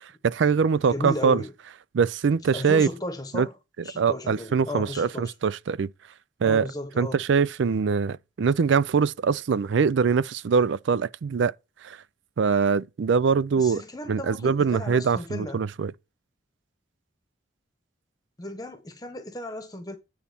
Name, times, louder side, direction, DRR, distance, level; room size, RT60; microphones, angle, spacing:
voice 1, 0.2-1.4 1.9-2.9 3.3-3.5 4.0-5.9 6.4-6.7 7.0-11.5 11.8-12.0 12.4-13.8 14.1-15.9, right 5 dB, 70° right, 0.4 m, -23 dB
voice 2, 0.9-1.5 2.5-3.5 3.8-5.3 6.4-7.2 13.6-15.6 18.4-20.0, left 1 dB, 20° left, 1.0 m, -35 dB
9.5 x 4.2 x 6.9 m
head